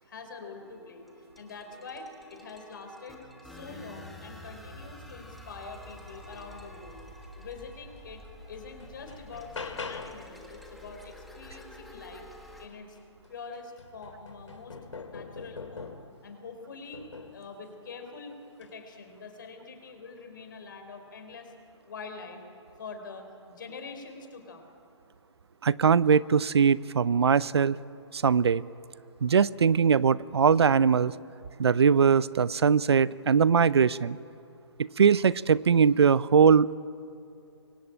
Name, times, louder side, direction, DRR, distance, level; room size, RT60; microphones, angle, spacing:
voice 1, 0.0-7.1 7.3-12.3 12.6-13.0 13.3-14.8 15.1-16.0 16.2-17.0 17.3-21.5 21.9-22.4 22.8-24.7, left 4 dB, 45° left, 6 dB, 4.8 m, -45 dB
sound 1, 0.6-12.7, left 1 dB, ahead, 1.4 m, -48 dB
sound 2, 8.0-8.1 8.5-10.4 12.7-12.8 13.2-16.2 16.9-17.5 18.5-18.8, left 4 dB, 80° left, 3.0 m, -42 dB
voice 2, 25.6-27.8 28.1-28.6 29.2-31.1 31.6-34.2 34.8-36.7, right 6 dB, 60° right, 19 dB, 0.6 m, -21 dB
27.0 x 23.0 x 8.9 m, 2.7 s
hypercardioid pair, 175°, 15 cm